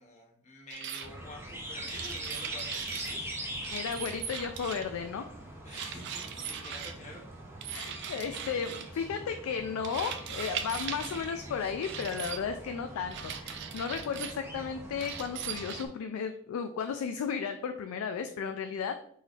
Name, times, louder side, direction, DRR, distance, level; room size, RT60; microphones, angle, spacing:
voice 1, 0.0-3.9 5.6-7.2, left 2 dB, 30° left, -2 dB, 0.6 m, -48 dB
sound 1, 0.7-1.1 1.9-3.2 3.6-5.0 5.7-7.0 7.6-8.9 9.8-11.3 11.8-12.4 13.1-14.4 15.0-15.8, right 8 dB, 55° right, 0.3 m, -39 dB
sound 2, 1.0-15.9, right 1 dB, 10° right, 0.6 m, -43 dB
voice 2, 3.7-5.3 7.7-19.0, left 6 dB, 80° left, 7 dB, 0.3 m, -34 dB
4.0 x 3.2 x 2.4 m, 0.65 s
head